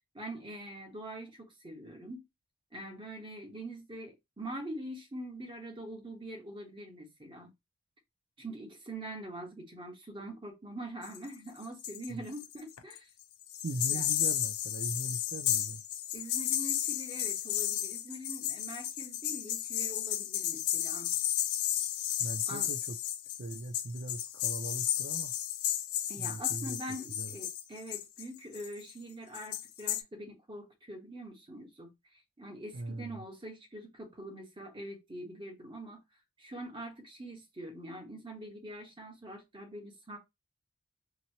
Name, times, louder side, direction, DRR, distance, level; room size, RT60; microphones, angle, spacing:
voice 1, 0.1-2.2 2.7-7.5 8.4-13.1 13.9-14.0 16.1-21.1 22.5-22.7 26.1-36.0 36.4-40.2, right 1 dB, 20° right, 1.1 m, -44 dB
sound 1, 11.0-12.1 12.3-13.0 13.4-28.9 29.3-30.0, left 11 dB, 80° left, 0.5 m, -33 dB
voice 2, 13.6-15.8 22.2-22.9 23.4-25.3 26.2-26.8 27.2-27.3 32.7-33.2, right 2 dB, 50° right, 0.4 m, -40 dB
2.9 x 2.7 x 2.8 m
head